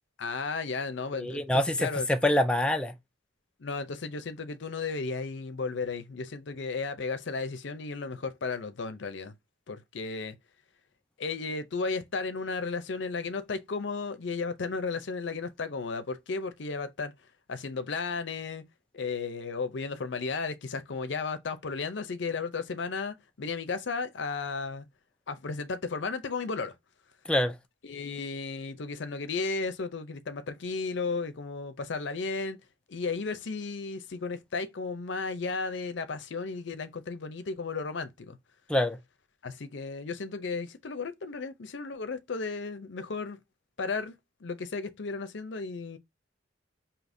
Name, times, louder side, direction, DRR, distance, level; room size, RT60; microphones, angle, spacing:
voice 1, 0.2-1.4 1.8-2.1 3.6-9.3 9.7-10.4 11.2-17.1 17.5-18.6 18.9-24.8 25.3-26.7 27.8-32.6 32.9-38.4 39.4-43.4 43.8-44.1 44.4-46.0, left 4 dB, 65° left, 0.6 m, -34 dB
voice 2, 1.2-2.9 27.3-27.5 38.7-39.0, left 1 dB, 5° left, 0.4 m, -25 dB
5.0 x 2.8 x 2.6 m
head